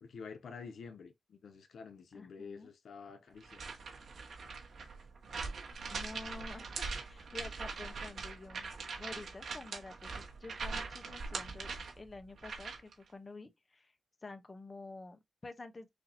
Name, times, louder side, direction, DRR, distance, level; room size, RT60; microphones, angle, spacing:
voice 1, 0.0-3.7, left 5 dB, 90° left, 0.8 m, -49 dB
voice 2, 2.1-2.7 5.9-8.7 9.0-11.7 12.0-13.9 14.2-15.9, left 3 dB, 35° left, 1.0 m, -49 dB
sound 1, 3.4-12.9, right 4 dB, 85° right, 1.7 m, -42 dB
6.4 x 2.8 x 2.9 m
wide cardioid pair, 90°, 0 cm